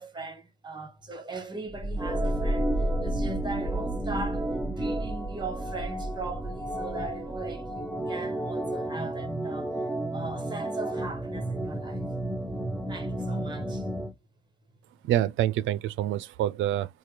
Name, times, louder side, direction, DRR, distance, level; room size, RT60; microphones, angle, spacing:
voice 1, 0.0-2.7 3.0-4.5 4.8-9.7 10.1-12.0 12.9-13.9, right 3 dB, 20° right, 1.2 m, -39 dB
sound 1, 1.7-7.7, right 1 dB, 50° left, 1.1 m, -33 dB
Organ, 2.0-14.1, right 1 dB, ahead, 0.6 m, -33 dB
voice 2, 15.0-17.0, right 12 dB, 80° right, 0.4 m, -27 dB
4.2 x 2.3 x 3.2 m
cardioid pair, 90°, 20 cm